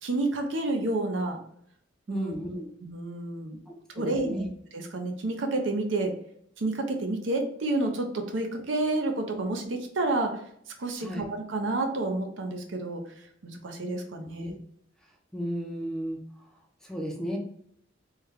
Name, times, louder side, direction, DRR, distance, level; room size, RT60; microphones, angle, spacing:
voice 1, 0.0-1.4 2.1-2.4 2.8-3.6 3.9-4.5 4.7-6.1 6.6-10.4 10.8-13.0 13.4-14.5, right 2 dB, 70° right, 4 dB, 0.6 m, -29 dB
voice 2, 2.1-2.7 4.0-4.4 11.0-11.3 14.4-14.5 15.3-16.2 16.8-17.4, equal, 5° left, 0 dB, 0.5 m, -33 dB
3.2 x 2.2 x 3.5 m, 0.69 s
head